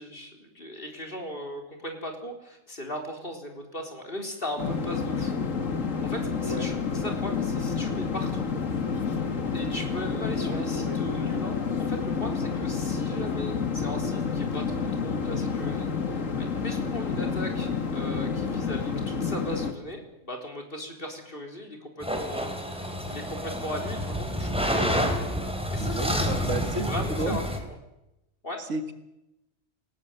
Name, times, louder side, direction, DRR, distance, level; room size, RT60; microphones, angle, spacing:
voice 1, 0.0-5.4 6.0-8.5 9.5-24.7 25.7-26.3 26.8-27.4 27.7-27.8 28.4-28.6, left 1 dB, 45° left, 3 dB, 4.2 m, -38 dB
sound 1, 4.6-19.7, left 5 dB, 80° left, 2.3 m, -29 dB
voice 2, 10.4-11.0 17.2-17.3 25.8-26.9 27.2-27.4 28.6-28.9, right 3 dB, 70° right, 8 dB, 2.2 m, -33 dB
sound 2, 22.0-27.6, equal, 5° right, 3.5 m, -29 dB
28.0 x 18.5 x 8.0 m, 0.92 s
omnidirectional pair, 1.3 m